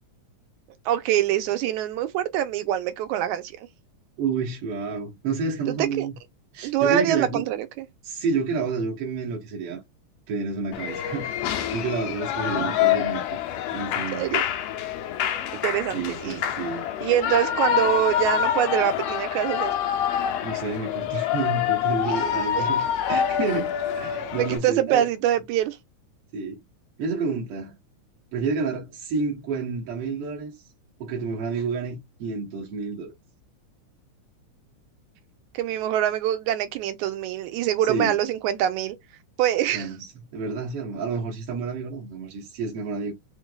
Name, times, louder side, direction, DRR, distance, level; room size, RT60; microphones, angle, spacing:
voice 1, 0.9-3.7 5.7-6.1 6.6-7.9 14.1-14.4 15.5-16.4 17.0-19.7 22.1-22.2 22.6-22.7 24.4-25.8 35.5-39.0 39.4-39.9, right 11 dB, 80° right, 2.0 m, -24 dB
voice 2, 4.2-6.1 6.5-7.4 8.0-9.8 10.3-11.4 11.7-13.2 13.7-14.2 15.9-16.9 20.4-25.1 26.3-26.6 27.0-27.7 28.3-30.6 31.0-33.1 37.9-38.2 39.7-43.1, right 4 dB, 65° right, 1.6 m, -29 dB
Shout / Cheering, 10.7-24.6, left 10 dB, 85° left, 1.4 m, -26 dB
4.6 x 3.2 x 2.2 m
omnidirectional pair, 3.5 m